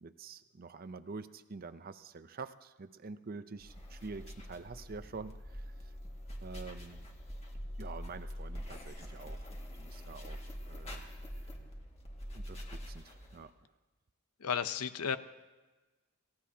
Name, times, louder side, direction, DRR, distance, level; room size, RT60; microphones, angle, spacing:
voice 1, 0.0-5.9 6.4-7.0 7.8-11.0 12.3-13.5, right 4 dB, 40° right, 12 dB, 0.6 m, -47 dB
sound 1, 3.6-13.5, equal, 30° left, 1.8 m, -45 dB
voice 2, 14.4-15.2, left 7 dB, 85° left, 12 dB, 0.7 m, -33 dB
28.5 x 16.0 x 2.8 m, 1.2 s
head